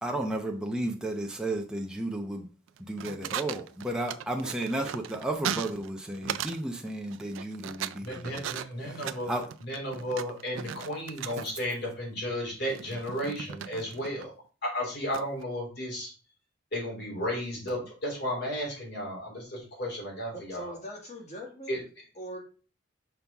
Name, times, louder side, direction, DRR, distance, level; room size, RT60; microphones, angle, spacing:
voice 1, 0.0-2.5 2.9-8.5 9.3-9.5, right 1 dB, 5° right, 0.7 m, -33 dB
sound 1, 2.7-6.6 6.9-11.7 12.6-14.2 15.1-15.4, right 9 dB, 70° right, 0.4 m, -37 dB
voice 2, 8.0-14.3 14.6-16.1 16.7-20.8 21.7-21.8, equal, 55° left, 3.1 m, -34 dB
voice 3, 20.3-21.8 22.2-22.4, right 1 dB, 35° left, 2.0 m, -41 dB
5.8 x 5.6 x 3.5 m
head